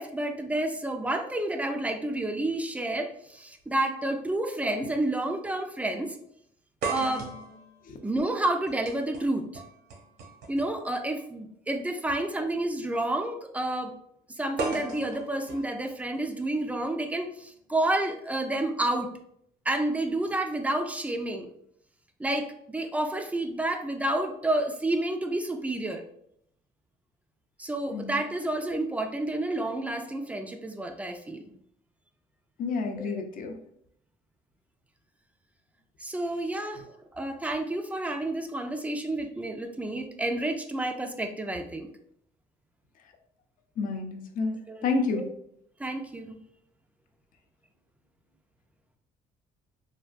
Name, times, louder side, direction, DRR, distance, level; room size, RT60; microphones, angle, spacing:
voice 1, 0.0-6.2 6.9-7.3 8.0-9.6 10.5-14.0 14.3-19.1 19.7-21.5 22.2-26.0 27.6-31.5 33.0-33.2 36.0-36.8 37.1-41.9 44.7-44.9 45.1-45.2 45.8-46.4, right 1 dB, 10° right, 5 dB, 0.3 m, -30 dB
sound 1, 3.6-3.7 4.8-5.0 5.4-5.5 6.8-10.8 12.0-12.2 14.6-16.6, right 3 dB, 70° right, 0.8 m, -38 dB
voice 2, 32.6-33.5 43.8-45.3, left 4 dB, 55° left, 5 dB, 0.5 m, -30 dB
3.4 x 2.2 x 2.4 m, 0.71 s
cardioid pair, 110°, 17 cm